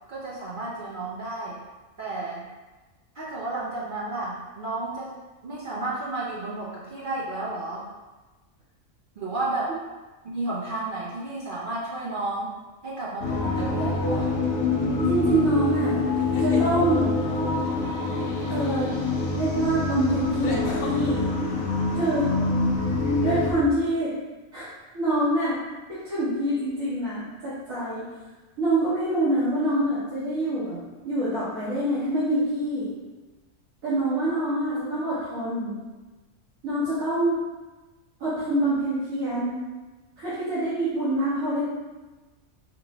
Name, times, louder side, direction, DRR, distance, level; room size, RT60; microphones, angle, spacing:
voice 1, 0.1-1.6 2.0-2.5 3.2-5.2 5.4-7.9 9.2-9.7 10.2-12.6 12.8-14.4, right 2 dB, 65° right, -5 dB, 0.5 m, -32 dB
sound 1, 13.2-23.5, left 3 dB, 65° left, 0.8 m, -25 dB
sound 2, 13.5-14.0 16.1-16.7 19.0-19.1 20.4-21.0, left 3 dB, 85° left, 1.0 m, -35 dB
voice 2, 15.1-16.0 16.4-17.1 18.5-18.9 19.3-21.3 21.9-22.3 23.2-24.1 24.5-24.6 24.9-25.6 25.9-28.1 28.6-30.8 31.0-32.9 33.8-35.8 36.6-37.3 38.2-39.6 40.2-41.6, right 1 dB, 85° right, -14 dB, 1.7 m, -25 dB
4.7 x 2.0 x 3.7 m, 1.2 s
omnidirectional pair, 1.4 m